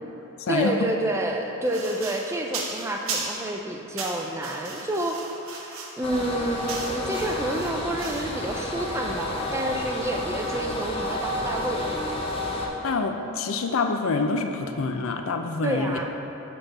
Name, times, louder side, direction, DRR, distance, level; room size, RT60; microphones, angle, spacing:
voice 1, 0.5-5.2 5.5-12.1 15.6-16.1, right 1 dB, 10° right, 1 dB, 0.3 m, -29 dB
sound 1, 1.6-3.5 4.0-8.3, right 4 dB, 70° right, 0.8 m, -36 dB
sound 2, 6.0-12.7, left 1 dB, 25° left, 0.6 m, -31 dB
voice 2, 12.8-16.0, left 4 dB, 70° left, 5 dB, 0.4 m, -26 dB
5.4 x 4.3 x 5.9 m, 3.0 s
head